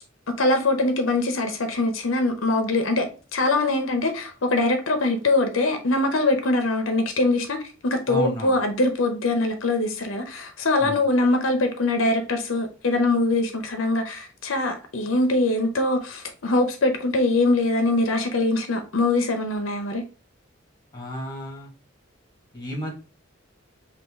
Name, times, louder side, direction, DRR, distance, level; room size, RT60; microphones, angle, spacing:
voice 1, 0.3-20.0, left 2 dB, 80° left, 0.7 m, -23 dB
voice 2, 8.1-8.6 10.8-11.0 20.9-21.7 22.5-22.9, equal, 20° left, 1.4 m, -31 dB
5.6 x 2.5 x 3.5 m
head